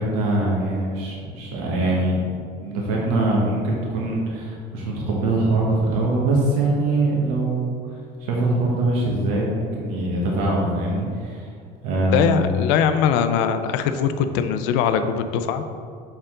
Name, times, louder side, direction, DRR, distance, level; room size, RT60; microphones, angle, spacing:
voice 1, 0.0-2.3 2.6-11.5 11.8-12.6, right 2 dB, 85° right, -3 dB, 1.2 m, -23 dB
voice 2, 12.1-15.6, left 7 dB, 80° left, 9 dB, 0.5 m, -21 dB
6.7 x 4.4 x 3.7 m, 2.3 s
supercardioid pair, 105°, 18 cm